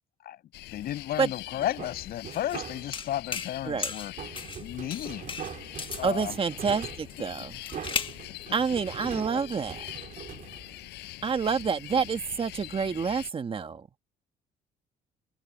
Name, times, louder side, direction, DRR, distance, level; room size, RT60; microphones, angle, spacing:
sound 1, 0.5-13.3, left 18 dB, 85° left, 6.2 m, -44 dB
voice 1, 0.7-5.3 6.0-6.4 9.0-9.4 11.9-12.0, left 12 dB, 65° left, 7.6 m, -34 dB
sound 2, 1.6-3.2 4.2-11.3, right 9 dB, 50° right, 2.9 m, -42 dB
sound 3, 2.3-2.6 2.9-3.6 3.8-4.6 4.9-6.1 7.1-8.2, left 5 dB, 30° left, 1.6 m, -35 dB
voice 2, 6.0-7.5 8.5-9.8 11.2-13.8, right 5 dB, 30° right, 1.7 m, -28 dB
cardioid pair, 110°, 17 cm